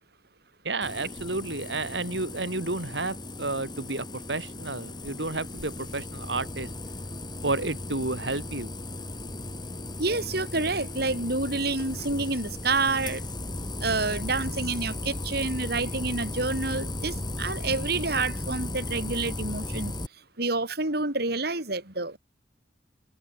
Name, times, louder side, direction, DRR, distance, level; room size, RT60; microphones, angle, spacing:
voice 1, 0.6-6.7 7.4-8.7, right 2 dB, 80° right, 3.8 m, -31 dB
sound 1, 0.8-20.1, left 1 dB, 25° left, 4.3 m, -36 dB
voice 2, 10.0-13.2 13.8-19.9 20.4-22.2, right 3 dB, 60° right, 5.9 m, -28 dB
head